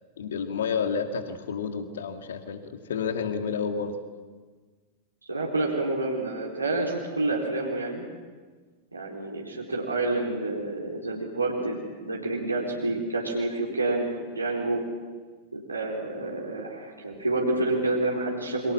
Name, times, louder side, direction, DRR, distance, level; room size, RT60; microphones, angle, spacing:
voice 1, 0.2-4.0, left 6 dB, 65° left, 7 dB, 2.3 m, -30 dB
voice 2, 5.3-8.0 8.9-14.8 15.5-18.7, right 2 dB, 85° right, -3 dB, 4.0 m, -28 dB
28.0 x 24.0 x 7.4 m, 1.4 s
figure-of-eight pair, 90°, 0 cm